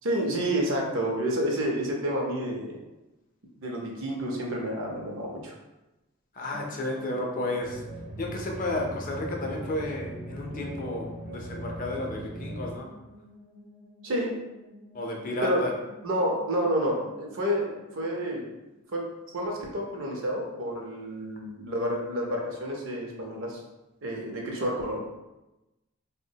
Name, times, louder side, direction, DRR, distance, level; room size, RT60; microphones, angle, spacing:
voice 1, 0.0-2.8 3.6-5.5 14.0-14.3 15.4-15.6 16.0-18.4 18.9-19.0 19.3-23.6 24.0-25.0, equal, 60° right, -1 dB, 0.6 m, -29 dB
voice 2, 6.3-7.8 8.2-12.9 14.9-15.7, left 2 dB, 40° left, 0 dB, 0.4 m, -32 dB
sound 1, 6.5-19.4, left 1 dB, 90° right, 0.8 m, -52 dB
sound 2, 7.6-12.7, right 1 dB, 15° right, 0.5 m, -39 dB
3.3 x 2.1 x 2.7 m, 1.0 s
head